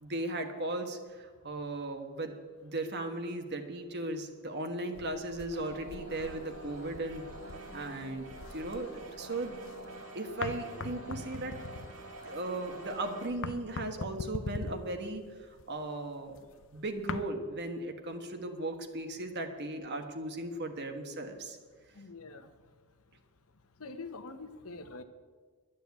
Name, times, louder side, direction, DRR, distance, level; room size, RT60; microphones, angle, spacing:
voice 1, 0.0-2.3 2.6-7.2 7.7-9.5 10.1-11.6 12.2-15.2 15.7-16.5 16.7-21.6, right 2 dB, 50° right, 5 dB, 1.4 m, -37 dB
sound 1, 4.9-9.9 10.3-17.2, left 3 dB, 60° left, 0.7 m, -43 dB
sound 2, 5.5-13.3, right 2 dB, 85° right, 3.6 m, -47 dB
voice 2, 21.9-22.5 23.8-25.0, left 3 dB, 75° left, 9 dB, 1.2 m, -44 dB
11.5 x 10.5 x 8.3 m, 1.5 s
head